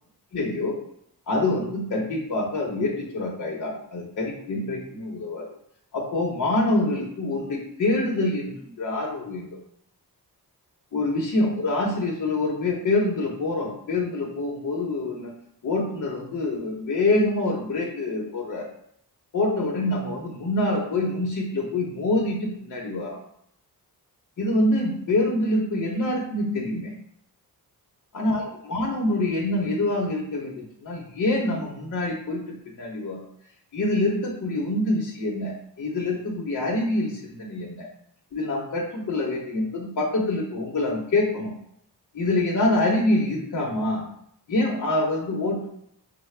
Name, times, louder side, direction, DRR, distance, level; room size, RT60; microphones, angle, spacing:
voice 1, 0.3-0.8 1.3-5.4 5.9-9.5 10.9-15.3 15.6-18.7 19.3-23.2 24.4-26.9 28.1-32.4 32.7-33.2 33.7-37.9 38.3-41.5 42.1-44.0 44.5-45.7, left 2 dB, 50° left, -2 dB, 0.8 m, -25 dB
5.6 x 2.1 x 3.2 m, 0.70 s
wide cardioid pair, 145°, 39 cm